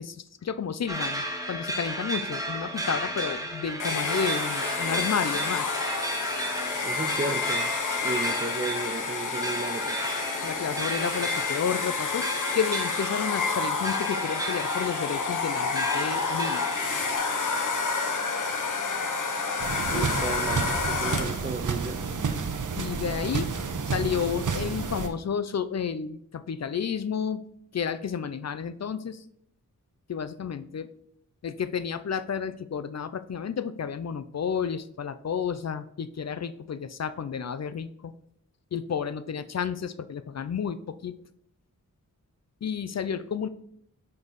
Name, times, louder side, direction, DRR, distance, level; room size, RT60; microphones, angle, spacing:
voice 1, 0.0-5.7 10.4-12.3 12.5-16.8 19.9-20.1 22.8-23.5 23.9-27.4 27.7-29.2 30.1-30.9 31.4-38.1 38.7-41.1 42.6-43.5, left 7 dB, 55° left, 0.5 m, -31 dB
sound 1, 0.9-17.1, equal, 10° right, 1.1 m, -34 dB
Domestic sounds home sounds, 3.8-21.5, left 4 dB, 70° left, 1.2 m, -29 dB
voice 2, 6.8-7.7 8.0-10.0 19.7-22.0, right 3 dB, 25° right, 0.5 m, -34 dB
sound 2, 19.6-25.1, right 5 dB, 65° right, 0.9 m, -30 dB
6.3 x 5.4 x 4.0 m
wide cardioid pair, 110°, 33 cm